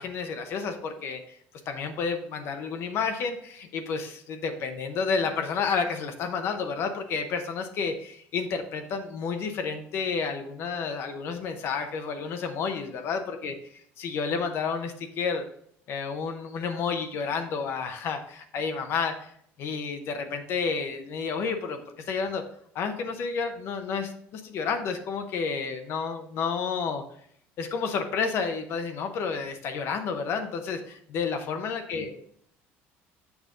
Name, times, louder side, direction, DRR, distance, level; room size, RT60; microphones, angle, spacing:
voice 1, 0.0-1.4 1.7-15.4 15.9-19.3 19.6-22.4 22.7-27.0 27.6-32.2, left 5 dB, 55° left, 6 dB, 0.7 m, -30 dB
7.2 x 5.2 x 3.7 m, 0.67 s
cardioid pair, 130°, 5 cm